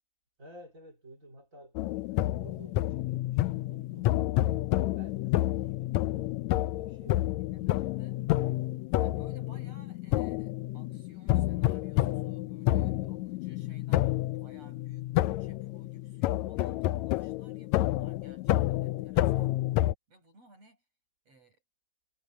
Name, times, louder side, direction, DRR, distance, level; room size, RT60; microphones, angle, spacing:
voice 1, 0.4-4.1 5.0-5.9 6.7-7.8 8.1-8.3, right 1 dB, 25° right, 2.7 m, -53 dB
sound 1, 1.8-19.9, left 16 dB, 90° left, 1.6 m, -29 dB
voice 2, 7.4-8.2 9.0-19.6 20.1-20.8 21.3-21.6, right 2 dB, 45° right, 9.3 m, -61 dB
omnidirectional pair, 3.9 m